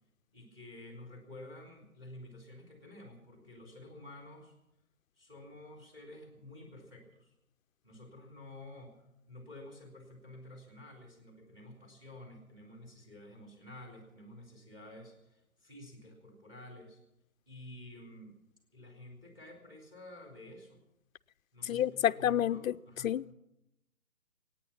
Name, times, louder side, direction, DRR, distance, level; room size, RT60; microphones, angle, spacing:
voice 1, 0.3-4.5 5.2-7.3 7.8-17.0 17.5-18.4 18.7-20.8 21.5-23.3, left 1 dB, 10° right, 2 dB, 3.5 m, -51 dB
voice 2, 21.7-22.7 23.0-23.3, left 10 dB, 70° left, 12 dB, 0.5 m, -29 dB
25.5 x 9.4 x 5.8 m, 0.86 s
figure-of-eight pair, 145°, 42 cm